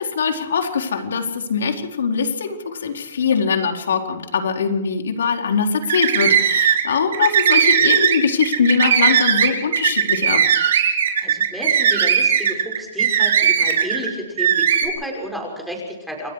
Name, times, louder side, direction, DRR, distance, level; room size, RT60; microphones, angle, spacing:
voice 1, 0.0-10.4, left 5 dB, 85° left, 3 dB, 4.2 m, -22 dB
sound 1, 5.8-6.8 7.1-14.1 14.4-14.9, right 8 dB, 70° right, 5.1 m, -17 dB
voice 2, 11.2-16.3, equal, ahead, 0 dB, 6.3 m, -31 dB
29.0 x 22.5 x 5.0 m, 0.95 s
hypercardioid pair, 155°, 0 cm